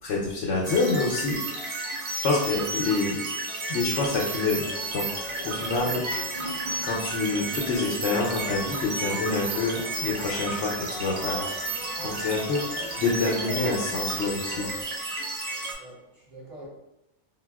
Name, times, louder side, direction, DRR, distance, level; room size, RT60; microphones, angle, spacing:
voice 1, 0.0-1.7 2.2-3.2 3.7-4.7 4.9-5.1 5.4-6.0 6.8-11.4 12.0-12.6 13.0-14.7, left 3 dB, 85° left, -3 dB, 0.9 m, -27 dB
sound 1, 0.6-15.7, right 2 dB, 75° right, 0.9 m, -32 dB
sound 2, 4.4-14.8, left 2 dB, 40° left, 0.4 m, -41 dB
voice 2, 12.0-12.3 15.8-16.7, right 1 dB, 35° right, -8 dB, 0.8 m, -46 dB
4.1 x 2.2 x 2.2 m, 0.87 s
omnidirectional pair, 1.2 m